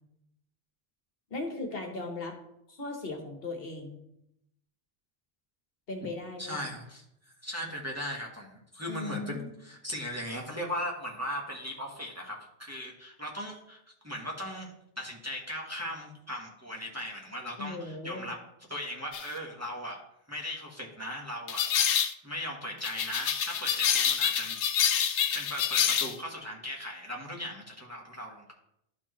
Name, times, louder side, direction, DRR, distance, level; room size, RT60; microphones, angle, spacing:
voice 1, 1.3-2.4 2.7-4.0 5.9-6.6 8.9-9.5 17.6-18.3, left 3 dB, 60° left, 3 dB, 1.3 m, -37 dB
voice 2, 6.4-7.0 7.4-14.7 15.0-18.4 18.7-20.0 20.3-24.6 25.3-28.5, equal, 15° right, -1 dB, 1.2 m, -38 dB
sound 1, 19.1-19.3 21.5-22.1 22.8-26.2, left 8 dB, 85° left, 0.9 m, -27 dB
12.5 x 4.4 x 3.1 m, 0.79 s
omnidirectional pair, 1.1 m